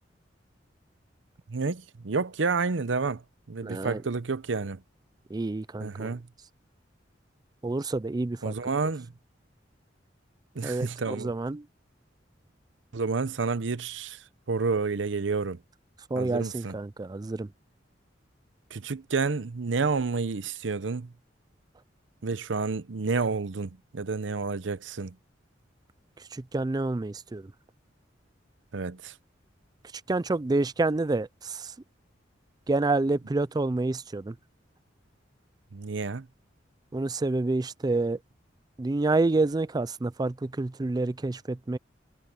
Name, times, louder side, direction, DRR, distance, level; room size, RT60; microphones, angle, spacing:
voice 1, 1.5-3.2 3.5-4.8 5.8-6.3 8.4-9.1 10.5-11.3 12.9-15.6 16.1-16.8 18.7-21.1 22.2-25.2 28.7-29.1 35.7-36.3, right 4 dB, 85° right, 0.7 m, -30 dB
voice 2, 3.6-4.0 5.3-6.2 7.6-8.5 10.6-11.7 16.1-17.5 26.3-27.5 30.1-31.7 32.7-34.4 36.9-38.2 38.8-41.8, right 2 dB, 20° right, 0.4 m, -28 dB
head